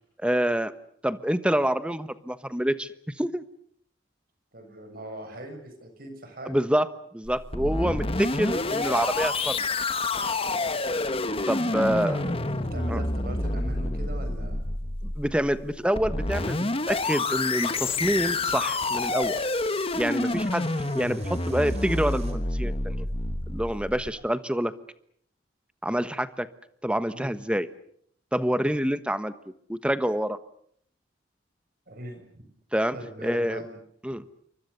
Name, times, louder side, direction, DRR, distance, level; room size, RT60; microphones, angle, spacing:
voice 1, 0.2-0.7 1.0-2.9 3.2-3.4 6.4-6.9 7.1-9.6 11.5-12.2 12.9-13.0 15.0-19.4 19.9-20.7 20.9-23.0 23.5-24.7 25.8-26.5 26.8-27.7 28.3-29.3 29.7-30.4 32.7-33.0 33.2-33.6 34.0-34.2, equal, 5° right, 12 dB, 1.2 m, -27 dB
voice 2, 4.5-6.5 10.5-10.7 11.6-14.6 20.2-20.4 27.1-27.4 31.9-32.5 32.9-33.8, right 1 dB, 50° right, 6 dB, 6.9 m, -40 dB
sound 1, 7.3-24.1, left 2 dB, 30° left, 1.4 m, -28 dB
sound 2, 17.3-22.3, right 4 dB, 35° right, 4.8 m, -48 dB
29.0 x 24.5 x 6.9 m, 0.66 s
head